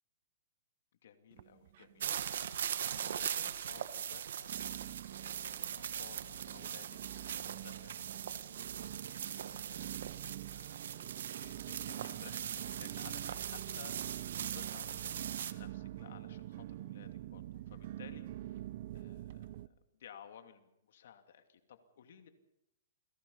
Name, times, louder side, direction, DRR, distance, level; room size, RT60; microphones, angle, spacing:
voice 1, 1.0-10.0 10.4-18.6 18.9-22.3, left 8 dB, 65° left, 7 dB, 2.6 m, -58 dB
sound 1, 1.3-2.3 2.5-3.2 3.7-3.8 4.5-19.7, right 14 dB, 50° right, 0.7 m, -46 dB
sound 2, 2.0-15.5, right 9 dB, 70° right, 1.6 m, -40 dB
28.5 x 18.0 x 5.6 m, 0.82 s
hypercardioid pair, 155°, 0 cm